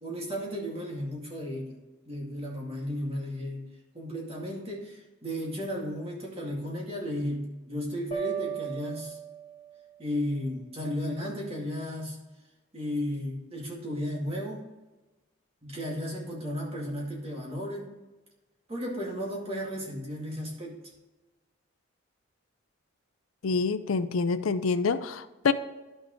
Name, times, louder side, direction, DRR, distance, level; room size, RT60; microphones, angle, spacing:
voice 1, 0.0-1.8 2.1-3.6 3.9-9.2 10.0-12.2 12.7-14.6 15.6-17.9 18.7-20.7, equal, 30° right, -2 dB, 2.2 m, -34 dB
sound 1, 8.1-10.0, right 8 dB, 25° left, 2.1 m, -36 dB
voice 2, 23.4-25.5, left 4 dB, 85° left, 12 dB, 0.5 m, -26 dB
11.5 x 6.3 x 3.1 m, 1.1 s
head